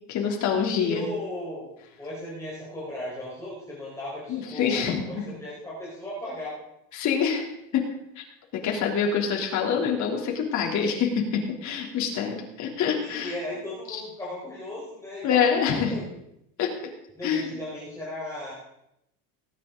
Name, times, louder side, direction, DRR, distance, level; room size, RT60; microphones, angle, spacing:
voice 1, 0.1-1.0 4.3-5.0 6.9-7.5 7.7-7.9 8.2-8.3 8.6-13.3 13.9-14.0 15.2-15.9 16.6-16.7 17.2-17.5, left 7 dB, 45° left, 0 dB, 3.1 m, -25 dB
voice 2, 0.8-1.7 2.0-6.6 13.0-16.1 17.2-18.5, left 1 dB, 10° left, -8 dB, 4.5 m, -36 dB
18.5 x 9.7 x 3.8 m, 0.80 s
cardioid pair, 140°, 39 cm